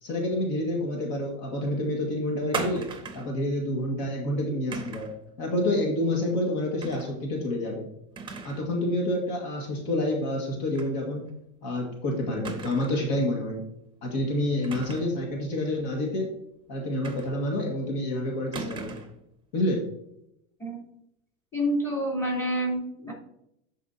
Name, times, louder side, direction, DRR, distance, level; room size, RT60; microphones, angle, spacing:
voice 1, 0.0-2.9 3.1-5.1 5.4-7.9 8.4-11.3 11.6-13.6 14.0-16.3 16.7-19.0 19.5-19.8, left 1 dB, 55° left, 0 dB, 1.9 m, -28 dB
sound 1, 2.5-3.4 4.7-5.2 6.8-7.1 7.5-7.6 8.2-8.7 9.0-9.1 10.7-11.0 11.3-11.4 12.4-13.1 14.6-15.2 17.0-17.6 18.5-19.2, right 4 dB, 10° right, 1.0 m, -37 dB
voice 2, 21.5-23.1, equal, 5° left, -2 dB, 3.5 m, -28 dB
13.5 x 5.0 x 2.8 m, 0.78 s
supercardioid pair, 135°, 41 cm